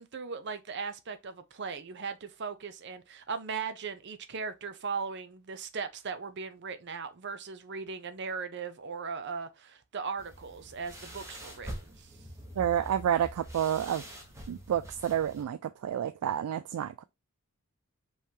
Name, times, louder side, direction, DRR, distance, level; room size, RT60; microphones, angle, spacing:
voice 1, 0.0-12.1, right 5 dB, 50° right, 0.6 m, -38 dB
sound 1, 10.2-15.4, right 1 dB, 15° right, 1.1 m, -45 dB
voice 2, 12.6-14.0 14.5-17.0, right 9 dB, 85° right, 0.3 m, -29 dB
5.4 x 3.2 x 2.8 m
head